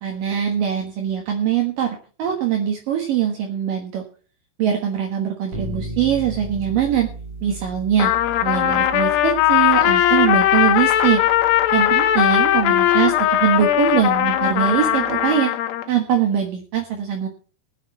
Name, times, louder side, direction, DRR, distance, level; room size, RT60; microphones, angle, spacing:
voice 1, 0.0-4.0 4.6-7.1 7.4-8.1 8.4-11.2 11.7-15.5 15.9-17.3, right 9 dB, 65° right, 2 dB, 2.7 m, -22 dB
sound 1, 5.5-15.3, right 2 dB, 40° right, 3.6 m, -37 dB
Trumpet, 8.0-15.9, left 12 dB, 85° left, 3.0 m, -18 dB
19.5 x 8.5 x 4.1 m, 0.39 s
omnidirectional pair, 4.7 m